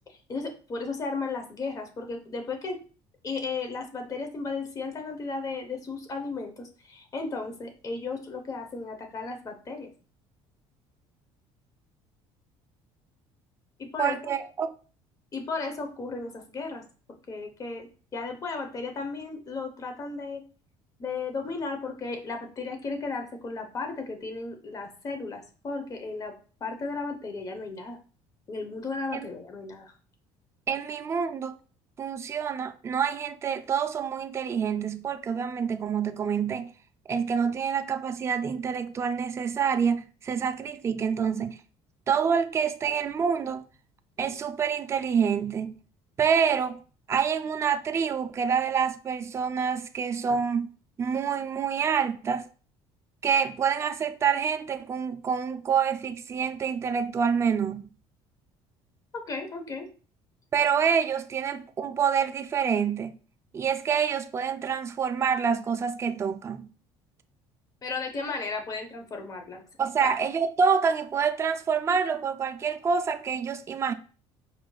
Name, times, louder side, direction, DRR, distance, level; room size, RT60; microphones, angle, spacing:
voice 1, 0.3-2.8 3.2-9.9 13.8-14.3 15.3-16.8 17.3-20.4 21.0-26.3 26.6-28.0 28.5-29.9 59.1-59.9 67.8-69.7 70.0-70.2, left 4 dB, 30° left, 0.8 m, -35 dB
voice 2, 14.0-14.7 29.1-29.3 30.7-31.6 32.0-36.7 37.1-41.6 42.1-43.6 44.2-45.7 46.2-46.8 47.1-50.7 51.0-52.5 53.2-57.9 60.5-63.1 63.5-66.7 69.8-73.9, right 6 dB, 25° right, 0.3 m, -27 dB
4.9 x 3.1 x 2.3 m
cardioid pair, 120°, 11 cm